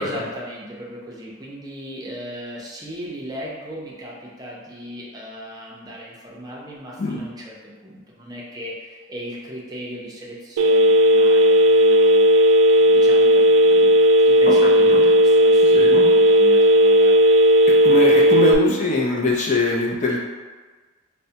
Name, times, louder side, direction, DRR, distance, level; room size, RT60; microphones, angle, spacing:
voice 1, 0.0-8.7 9.1-12.2 12.8-14.0 14.3-17.2, equal, 20° right, -4 dB, 0.5 m, -36 dB
Telephone, 10.6-18.5, equal, 85° right, 0.3 m, -14 dB
voice 2, 14.4-15.0 15.7-16.1 17.8-20.2, left 2 dB, 35° left, -2 dB, 0.4 m, -22 dB
4.5 x 2.1 x 2.7 m, 1.4 s
head